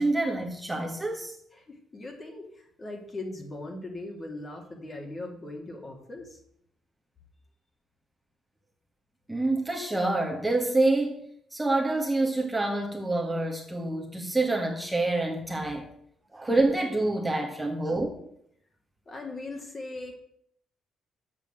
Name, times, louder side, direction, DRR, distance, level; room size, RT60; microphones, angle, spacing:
voice 1, 0.0-1.3 9.3-11.2 11.5-15.9 16.3-18.1, right 2 dB, 10° right, 1.6 m, -27 dB
voice 2, 1.5-6.4 16.5-16.6 19.1-20.1, left 2 dB, 35° left, 2.6 m, -39 dB
7.5 x 6.1 x 7.7 m
cardioid pair, 90°, 0 cm